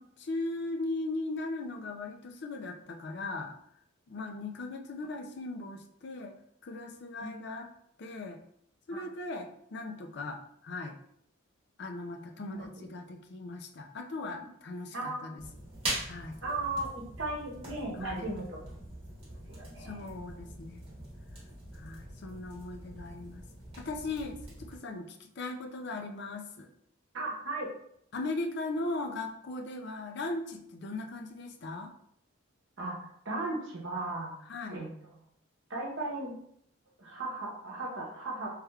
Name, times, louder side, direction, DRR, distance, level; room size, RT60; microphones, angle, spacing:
voice 1, 0.0-3.5 4.1-6.3 6.6-7.7 8.0-8.4 8.9-10.9 11.8-15.4 16.0-16.4 18.0-18.3 19.8-20.8 21.7-23.4 23.8-26.7 28.1-31.9 34.5-34.8, left 2 dB, 50° left, 5 dB, 0.4 m, -38 dB
voice 2, 12.5-12.8 14.9-15.3 16.4-18.6 19.5-20.1 27.1-27.7 32.8-34.3 34.7-34.9 35.7-36.4 37.0-38.5, right 2 dB, 65° right, -2 dB, 0.8 m, -36 dB
sound 1, 15.4-24.8, right 1 dB, 25° right, 1.3 m, -43 dB
3.2 x 3.1 x 2.3 m, 0.69 s
head